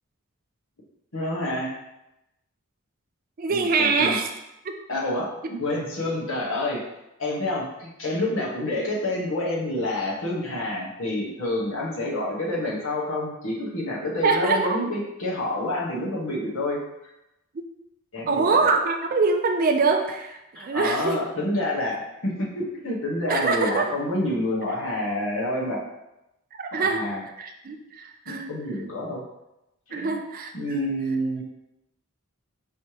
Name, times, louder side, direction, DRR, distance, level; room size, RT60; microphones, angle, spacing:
voice 1, 1.1-1.7 3.5-4.2 4.9-6.8 7.2-16.8 18.1-18.7 20.5-25.8 26.7-27.2 28.2-29.2 29.9-30.2 30.5-31.4, left 1 dB, 65° left, -3 dB, 1.2 m, -28 dB
voice 2, 3.4-4.3 4.6-4.7 14.2-14.8 17.5-17.6 18.3-21.2 23.3-23.9 26.6-27.0 27.4-28.5 29.9-30.9, right 4 dB, 40° right, 4 dB, 0.4 m, -24 dB
5.4 x 3.2 x 2.9 m, 0.90 s
head